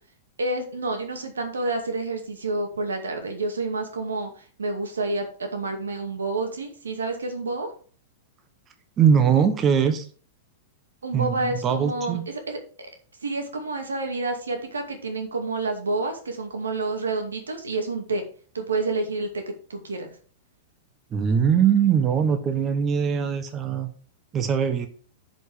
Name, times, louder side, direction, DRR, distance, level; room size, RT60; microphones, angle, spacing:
voice 1, 0.4-7.7 11.0-12.9 13.2-18.2 18.5-20.1, right 2 dB, 85° right, 4 dB, 2.4 m, -29 dB
voice 2, 9.0-10.0 11.1-12.2 21.1-23.9 24.3-24.9, right 7 dB, 30° right, 8 dB, 1.2 m, -21 dB
11.0 x 5.4 x 5.1 m, 0.41 s
hypercardioid pair, 105°, 0 cm